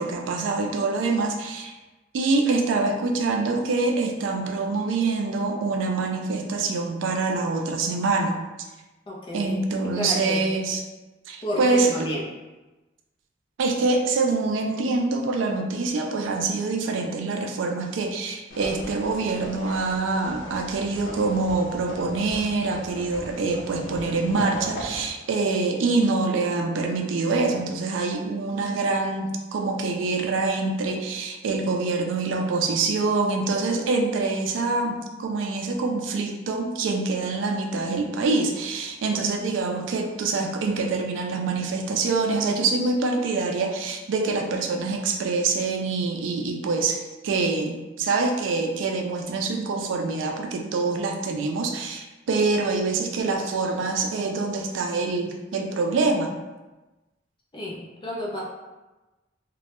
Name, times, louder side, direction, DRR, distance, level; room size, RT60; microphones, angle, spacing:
voice 1, 0.0-1.7 2.1-8.4 9.3-10.8 11.3-12.1 13.6-56.3, right 3 dB, 85° right, 3 dB, 0.3 m, -25 dB
voice 2, 9.1-9.5 9.9-10.4 11.4-12.2 57.5-58.4, left 1 dB, 25° left, -3 dB, 0.4 m, -31 dB
sound 1, 18.5-25.1, equal, 85° left, 0.5 m, -38 dB
2.1 x 2.0 x 2.9 m, 1.1 s
head